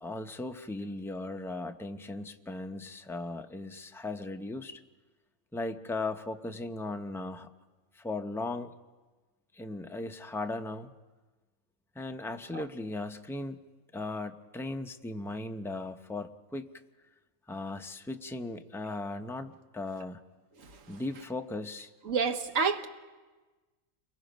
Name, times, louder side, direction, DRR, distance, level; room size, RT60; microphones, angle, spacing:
voice 1, 0.0-4.8 5.5-7.5 8.0-8.7 9.5-10.9 12.0-13.6 13.9-16.7 17.5-20.2 20.9-21.9, left 2 dB, 5° left, 0.3 m, -37 dB
voice 2, 20.6-21.0 22.0-22.9, right 5 dB, 75° right, 1.4 m, -30 dB
29.5 x 22.5 x 5.2 m
omnidirectional pair, 1.4 m